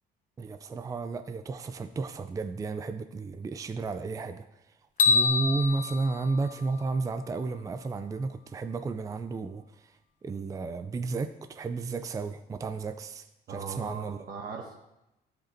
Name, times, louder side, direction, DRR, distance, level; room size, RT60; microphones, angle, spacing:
voice 1, 0.4-4.4 5.1-9.9 10.2-14.2, right 3 dB, 20° right, 9 dB, 0.4 m, -33 dB
sound 1, 5.0-7.3, left 4 dB, 50° left, 1.0 m, -27 dB
voice 2, 13.5-14.7, right 6 dB, 60° right, 0 dB, 1.2 m, -39 dB
12.0 x 5.2 x 4.4 m, 0.92 s
cardioid pair, 110°, 17 cm